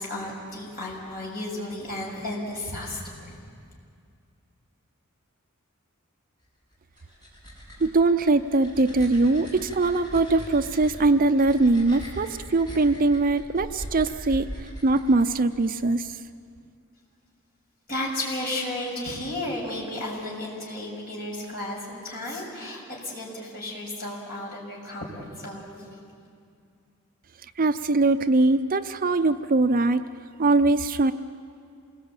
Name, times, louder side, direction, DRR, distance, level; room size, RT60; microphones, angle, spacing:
voice 1, 0.0-3.4 17.9-26.0, left 1 dB, 45° left, -3 dB, 6.9 m, -33 dB
sound 1, 6.7-15.7, equal, 20° left, 6.9 m, -41 dB
voice 2, 7.8-16.2 27.6-30.1 30.4-31.1, right 2 dB, 40° right, 10 dB, 0.5 m, -22 dB
27.5 x 20.5 x 8.9 m, 2.4 s
head